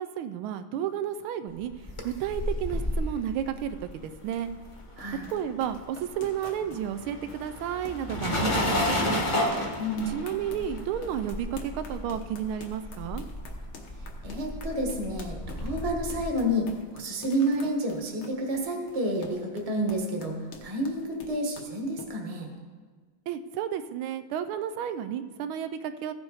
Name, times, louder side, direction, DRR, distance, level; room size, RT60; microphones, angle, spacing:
voice 1, 0.0-1.7 2.0-4.5 5.3-9.3 10.1-13.2 23.3-26.1, right 9 dB, 85° right, 11 dB, 1.4 m, -32 dB
sound 1, 1.6-5.3 5.5-16.3, left 1 dB, 20° left, 0.8 m, -32 dB
sound 2, 3.0-22.1, left 4 dB, 85° left, 1.9 m, -48 dB
voice 2, 5.0-5.3 9.8-10.1 14.2-22.5, equal, 20° right, 2 dB, 1.0 m, -30 dB
15.0 x 6.2 x 4.8 m, 1.5 s
omnidirectional pair, 2.3 m